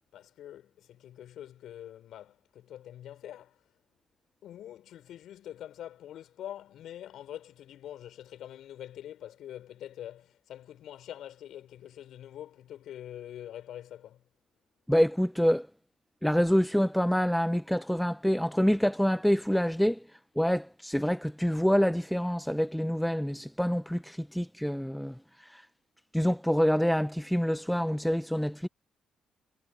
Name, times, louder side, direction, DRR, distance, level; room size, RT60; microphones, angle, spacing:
voice 1, 0.1-3.7 4.4-14.3, left 11 dB, 70° left, 6.2 m, -45 dB
voice 2, 14.9-15.7 16.2-20.0 20.4-25.2 25.5-25.6 26.1-28.7, equal, 5° left, 1.2 m, -26 dB
hypercardioid pair, 45°, 0 cm